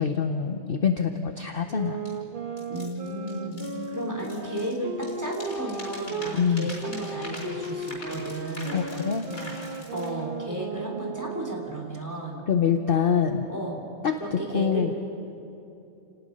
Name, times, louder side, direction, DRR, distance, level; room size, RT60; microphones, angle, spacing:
voice 1, 0.0-2.1 6.3-6.7 8.7-9.3 12.5-13.5 14.0-14.9, left 7 dB, 45° left, 6 dB, 0.9 m, -25 dB
sound 1, 1.7-6.4 6.8-11.8, right 3 dB, 40° right, 1.2 m, -36 dB
sound 2, 2.1-2.2 2.6-4.8 5.0-10.1, left 1 dB, 80° left, 4.9 m, -43 dB
voice 2, 2.7-3.6 3.9-8.8 9.3-9.6 9.9-12.4 13.5-13.8 14.2-14.9, right 1 dB, 10° right, -1 dB, 3.5 m, -33 dB
29.5 x 19.0 x 5.4 m, 2.8 s
omnidirectional pair, 1.5 m